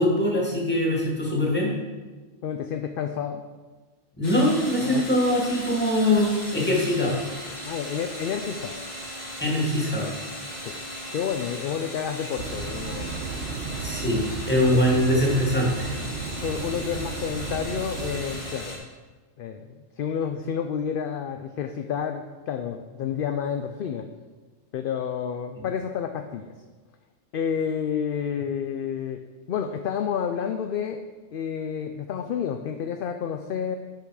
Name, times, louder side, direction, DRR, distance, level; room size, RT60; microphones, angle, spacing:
voice 1, 0.0-1.7 4.2-7.2 9.4-10.1 13.8-16.0 25.6-25.7, left 1 dB, 10° left, -3 dB, 2.1 m, -23 dB
voice 2, 2.4-3.4 4.8-5.0 7.6-8.8 10.6-10.8 11.1-13.2 14.7-14.8 16.4-18.9 19.4-19.7 20.0-24.1 24.7-26.5 27.3-31.0 31.3-33.8, left 7 dB, 60° left, 6 dB, 0.6 m, -30 dB
sound 1, 4.2-18.8, equal, 35° left, 2.1 m, -37 dB
sound 2, 12.4-18.6, right 5 dB, 80° right, 1.2 m, -34 dB
10.5 x 5.8 x 4.8 m, 1.3 s
omnidirectional pair, 1.2 m